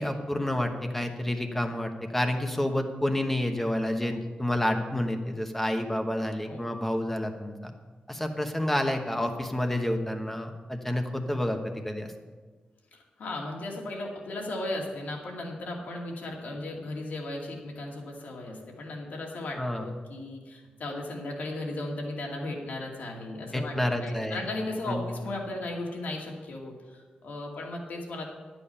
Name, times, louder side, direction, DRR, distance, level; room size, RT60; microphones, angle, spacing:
voice 1, 0.0-7.7 8.1-12.1 19.6-19.9 23.5-24.4 24.9-25.1, left 1 dB, 10° left, 4 dB, 1.1 m, -29 dB
voice 2, 12.9-28.2, left 2 dB, 75° left, -1 dB, 2.5 m, -36 dB
11.5 x 8.9 x 5.6 m, 1.4 s
wide cardioid pair, 145°, 3 cm